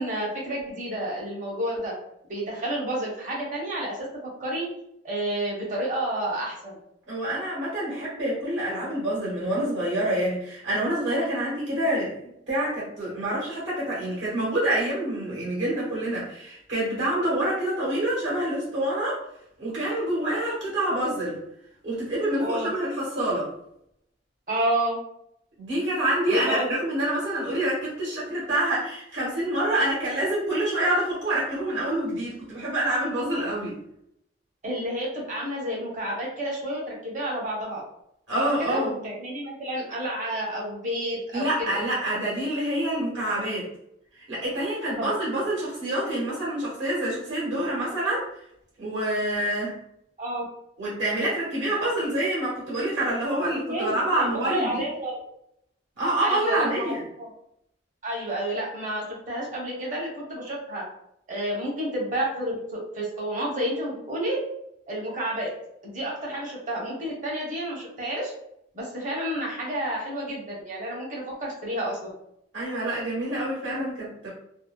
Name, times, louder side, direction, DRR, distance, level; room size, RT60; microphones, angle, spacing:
voice 1, 0.0-1.9 2.3-4.1 4.4-4.7 5.0-6.7 22.4-22.7 24.5-25.0 26.3-26.8 34.6-37.8 38.3-41.7 45.0-45.1 50.2-50.4 53.7-55.1 56.2-57.3 58.0-60.8 61.3-64.4 64.9-65.5 65.8-68.3 68.7-72.0, right 1 dB, 45° right, -3 dB, 0.8 m, -30 dB
voice 2, 7.1-12.1 12.5-19.2 19.6-21.4 21.8-23.5 25.6-33.8 38.3-39.0 41.3-43.7 44.2-48.3 48.8-49.8 50.8-54.8 56.0-57.0 72.5-74.3, right 1 dB, 80° right, -7 dB, 1.2 m, -27 dB
2.6 x 2.0 x 2.2 m, 0.76 s
head